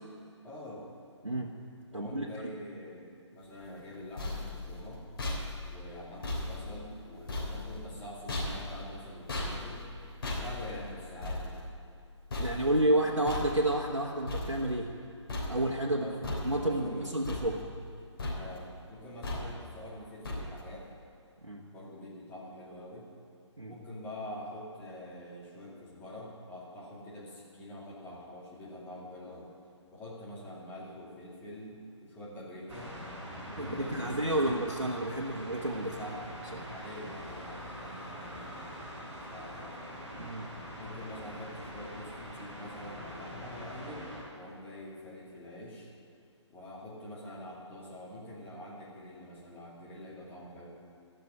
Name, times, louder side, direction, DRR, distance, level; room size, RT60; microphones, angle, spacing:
voice 1, 0.4-0.9 1.9-5.0 5.7-9.9 10.2-11.7 12.3-13.2 16.0-16.3 16.6-17.2 18.3-20.9 21.7-23.1 23.7-29.5 29.9-33.0 33.4-34.2 34.4-34.6 35.9-36.3 36.6-38.8 39.2-39.8 40.8-45.9 46.5-50.7, left 1 dB, 10° left, -6 dB, 2.4 m, -45 dB
voice 2, 1.2-1.6 1.9-2.2 12.4-14.9 15.5-17.6 21.4-21.6 23.6-23.7 33.6-36.0 36.5-36.6 40.2-40.5, right 1 dB, 90° right, -2 dB, 1.3 m, -30 dB
sound 1, 3.8-15.0 15.3-15.9 16.2-16.9 17.2-17.9 18.2-18.7 19.2-19.8 20.2-20.8, left 2 dB, 50° left, 3.8 m, -38 dB
sound 2, 32.7-44.2, equal, 15° right, 3.0 m, -44 dB
13.5 x 6.9 x 9.5 m, 2.4 s
figure-of-eight pair, 145°, 16 cm